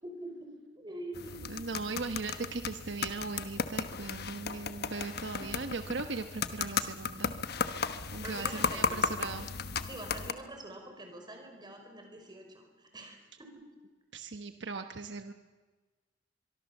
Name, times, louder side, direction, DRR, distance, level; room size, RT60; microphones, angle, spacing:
voice 1, 0.0-1.5 7.9-9.1 9.9-13.7, right 1 dB, 25° right, 3 dB, 5.3 m, -45 dB
sound 1, 1.1-10.3, left 5 dB, 60° left, 1.1 m, -35 dB
voice 2, 1.5-7.3 7.7-9.5 14.1-15.3, right 3 dB, 70° right, 7 dB, 1.1 m, -39 dB
24.0 x 23.5 x 7.3 m, 1.3 s
head